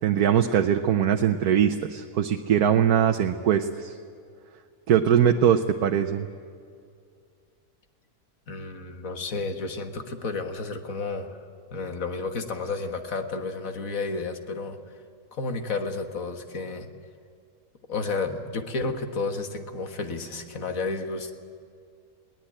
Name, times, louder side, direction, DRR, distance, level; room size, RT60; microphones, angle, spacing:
voice 1, 0.0-3.9 4.9-6.3, right 9 dB, 80° right, 5 dB, 1.3 m, -21 dB
voice 2, 8.5-11.4 11.7-14.8 15.3-16.9 17.9-21.3, left 3 dB, 60° left, 6 dB, 1.9 m, -31 dB
21.5 x 18.5 x 8.9 m, 2.3 s
omnidirectional pair, 1.6 m